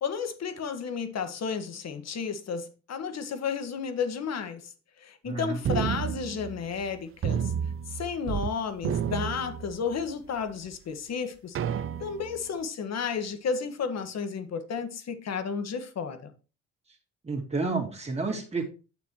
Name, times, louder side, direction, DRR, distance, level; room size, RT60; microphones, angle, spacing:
voice 1, 0.0-4.7 5.0-7.5 7.9-11.6 12.0-16.3, left 6 dB, 60° left, 1.6 m, -32 dB
voice 2, 5.2-5.6 17.2-18.6, right 3 dB, 20° right, 2.8 m, -30 dB
sound 1, 5.6-6.9 7.2-8.5 8.8-10.1 10.7-10.8 11.5-12.4, right 8 dB, 45° right, 0.5 m, -31 dB
9.3 x 7.0 x 3.1 m
cardioid pair, 90°, 30 cm